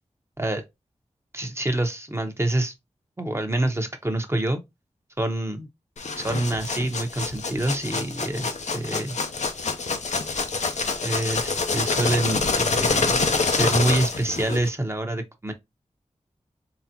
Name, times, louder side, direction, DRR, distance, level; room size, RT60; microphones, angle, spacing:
voice 1, 1.3-2.7 3.2-4.6 5.2-5.7 6.2-9.2 11.0-15.5, right 1 dB, 20° right, 0.9 m, -26 dB
sound 1, 6.0-14.7, left 4 dB, 70° left, 0.7 m, -26 dB
4.1 x 3.3 x 2.8 m
wide cardioid pair, 85°, 12 cm